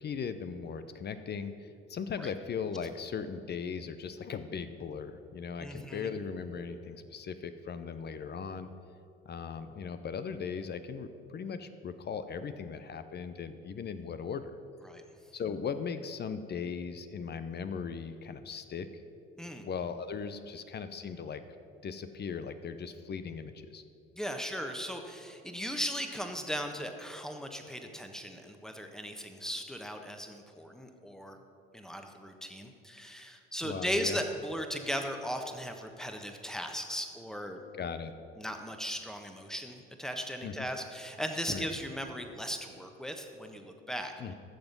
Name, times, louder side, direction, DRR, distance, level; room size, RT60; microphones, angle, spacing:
voice 1, 0.0-8.7 9.2-14.6 15.3-19.0 19.6-21.4 21.8-23.8 33.6-34.2 37.8-38.1 40.4-40.7 41.5-41.7 44.2-44.3, left 6 dB, 35° left, 10 dB, 0.7 m, -38 dB
voice 2, 5.6-6.1 14.8-15.0 19.4-19.6 24.1-31.4 31.7-37.6 38.4-44.1, equal, ahead, 5 dB, 1.3 m, -37 dB
14.0 x 6.9 x 5.4 m, 2.5 s
hypercardioid pair, 60°, 30 cm